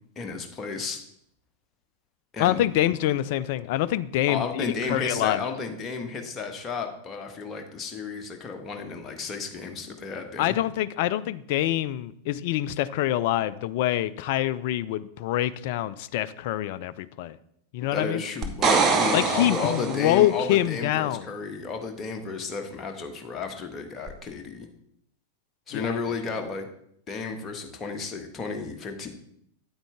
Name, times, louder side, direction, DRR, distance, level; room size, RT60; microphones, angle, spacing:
voice 1, 0.2-1.0 2.3-2.6 4.3-10.5 17.9-24.7 25.7-26.7 27.1-29.1, left 4 dB, 25° left, 4 dB, 1.3 m, -33 dB
voice 2, 2.4-5.4 10.4-17.4 17.7-18.2 19.1-21.2 25.7-26.0, left 13 dB, 50° left, 16 dB, 0.3 m, -25 dB
sound 1, 18.4-20.3 24.1-24.2, right 5 dB, 30° right, 1.1 m, -24 dB
8.9 x 8.8 x 3.4 m, 0.71 s
figure-of-eight pair, 90°, 0 cm